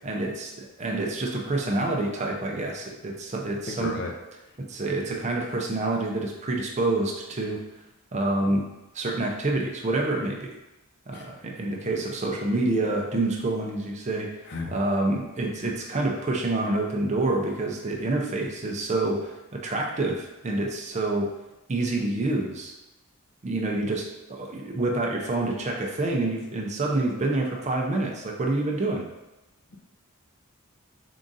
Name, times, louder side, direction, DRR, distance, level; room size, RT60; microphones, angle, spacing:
voice 1, 0.0-4.0 4.6-7.6 8.1-8.6 8.9-10.5 11.1-14.3 14.7-21.3 21.7-22.7 23.4-29.0, right 2 dB, 30° right, 0 dB, 0.5 m, -27 dB
voice 2, 3.7-4.1 11.1-11.3 14.5-14.7, left 2 dB, 50° left, 1 dB, 0.6 m, -33 dB
3.7 x 2.5 x 3.9 m, 0.99 s
head